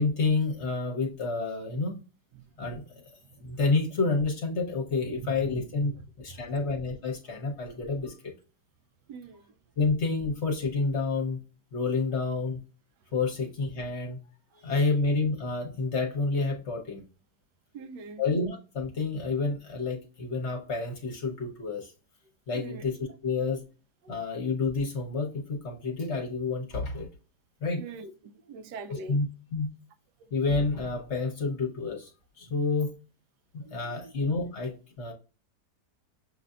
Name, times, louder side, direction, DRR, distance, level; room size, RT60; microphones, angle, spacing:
voice 1, 0.0-2.0 2.6-2.8 3.4-8.1 9.8-11.4 11.7-12.6 13.1-14.2 14.6-17.0 18.2-21.9 22.5-23.0 23.2-23.6 24.1-27.1 27.6-27.8 28.9-29.3 29.5-29.7 30.3-32.1 32.4-32.9 33.5-35.1, left 3 dB, 50° left, 1.1 m, -29 dB
voice 2, 5.2-5.6 6.0-6.1 6.3-6.4 9.1-9.5 17.7-18.2 22.5-22.8 24.0-24.1 27.8-29.2 33.6-34.1, right 5 dB, 85° right, 1.2 m, -43 dB
6.5 x 2.6 x 2.4 m
omnidirectional pair, 1.8 m